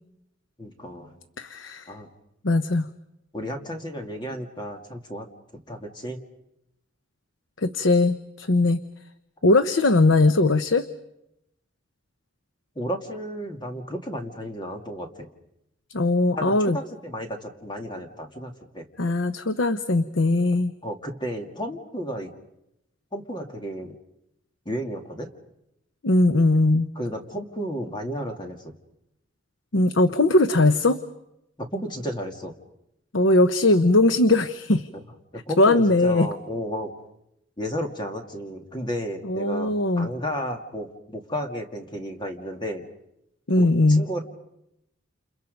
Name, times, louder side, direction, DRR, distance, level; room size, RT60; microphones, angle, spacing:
voice 1, 0.6-1.2 1.9-2.1 3.3-5.3 5.5-6.2 9.4-9.5 12.8-15.3 16.3-18.8 20.8-22.3 23.1-24.0 24.7-25.3 27.0-28.8 31.7-32.5 34.9-35.0 35.3-36.9 37.6-42.9 43.6-44.2, equal, 20° left, 4 dB, 2.2 m, -33 dB
voice 2, 1.4-1.9 2.4-2.9 7.6-8.8 9.4-10.8 15.9-16.8 19.0-20.7 26.0-26.9 29.7-31.0 33.1-34.9 35.6-36.3 39.2-40.1 43.5-44.1, left 2 dB, 70° left, 11 dB, 0.9 m, -20 dB
29.5 x 29.0 x 5.3 m, 0.84 s
head